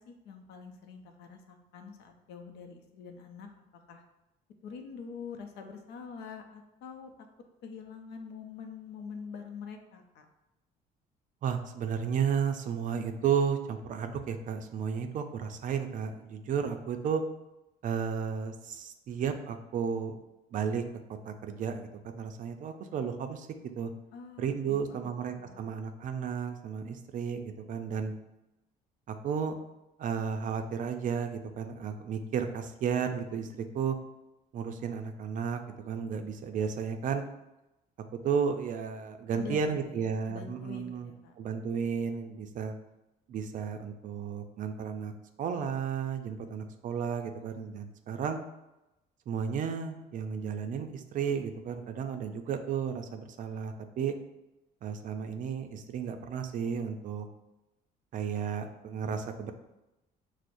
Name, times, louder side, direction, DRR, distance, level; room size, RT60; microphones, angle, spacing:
voice 1, 0.0-3.5 3.9-4.0 4.6-7.1 7.6-10.3 24.1-25.7 39.3-41.4, left 6 dB, 80° left, 4 dB, 0.5 m, -45 dB
voice 2, 11.4-17.2 17.8-20.1 20.5-20.8 21.2-23.5 23.8-23.9 24.4-28.1 29.1-29.6 30.0-34.0 34.5-37.2 38.2-41.1 41.4-42.7 43.3-45.1 45.4-48.4 49.3-54.2 54.8-57.3 58.1-59.5, right 7 dB, 50° right, 7 dB, 0.4 m, -33 dB
6.0 x 2.0 x 2.5 m, 0.95 s
cardioid pair, 110°, 17 cm